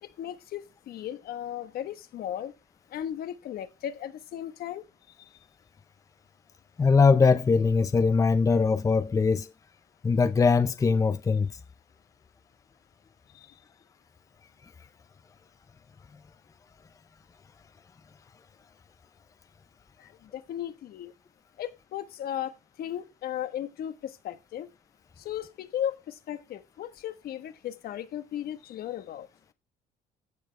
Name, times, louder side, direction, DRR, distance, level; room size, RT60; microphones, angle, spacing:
voice 1, 0.0-2.5 2.9-5.4 13.3-13.6 20.0-21.1 21.6-24.7 25.2-29.3, left 10 dB, 65° left, 1.2 m, -36 dB
voice 2, 6.8-9.5 10.0-11.5, left 4 dB, 20° left, 0.6 m, -21 dB
15.0 x 6.7 x 3.3 m
cardioid pair, 110°, 17 cm